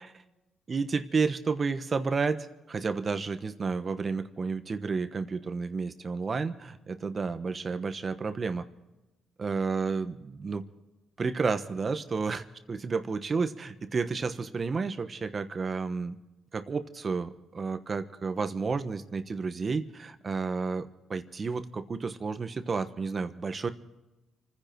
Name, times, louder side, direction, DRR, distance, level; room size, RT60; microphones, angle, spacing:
voice 1, 0.7-2.4 2.7-8.6 9.4-10.6 11.2-16.2 16.5-23.7, right 4 dB, 35° right, 10 dB, 1.2 m, -31 dB
28.5 x 10.0 x 4.6 m, 1.0 s
cardioid pair, 90°, 0 cm